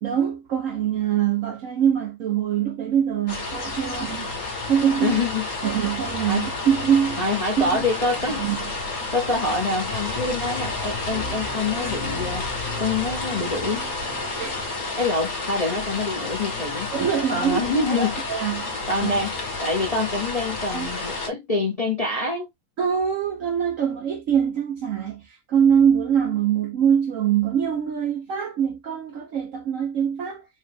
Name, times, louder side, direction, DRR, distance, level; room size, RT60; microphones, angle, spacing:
voice 1, 0.0-5.2 5.6-7.3 7.6-7.7 8.4-8.6 14.4-14.6 16.9-19.1 20.7-20.9 22.8-30.4, right 8 dB, 65° right, 0.9 m, -23 dB
sound 1, 3.3-21.3, left 3 dB, 55° left, 1.8 m, -30 dB
voice 2, 5.0-5.4 6.3-6.5 7.2-8.5 9.1-12.4 12.8-13.8 15.0-16.9 17.3-18.2 18.9-19.3 19.6-22.5, left 3 dB, 30° left, 0.7 m, -26 dB
sound 2, 11.1-15.0, right 4 dB, 85° right, 1.5 m, -39 dB
4.4 x 2.4 x 3.3 m
omnidirectional pair, 1.9 m